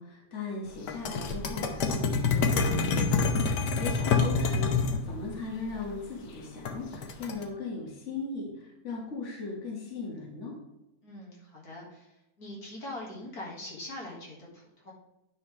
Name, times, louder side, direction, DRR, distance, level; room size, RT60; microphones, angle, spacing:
voice 1, 0.0-10.6, left 3 dB, 45° left, -3 dB, 2.0 m, -38 dB
sound 1, 0.9-5.0 6.6-7.4, left 4 dB, 90° left, 1.5 m, -26 dB
voice 2, 11.0-12.1 12.4-14.9, left 1 dB, 65° left, -3 dB, 2.4 m, -42 dB
10.0 x 5.6 x 3.2 m, 0.93 s
omnidirectional pair, 1.8 m